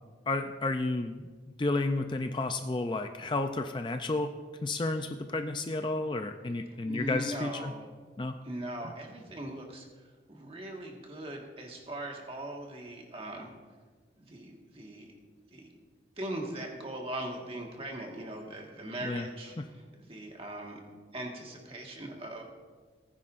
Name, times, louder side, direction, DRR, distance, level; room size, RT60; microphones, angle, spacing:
voice 1, 0.3-1.2 1.6-4.3 4.6-7.7 8.2-8.3 19.0-19.3, left 2 dB, 25° left, 7 dB, 0.4 m, -31 dB
voice 2, 6.8-7.9 8.4-13.5 14.1-15.2 15.5-15.7 16.2-20.8 21.1-22.4, right 1 dB, 30° right, 1 dB, 1.6 m, -40 dB
19.0 x 9.8 x 2.5 m, 1.5 s
head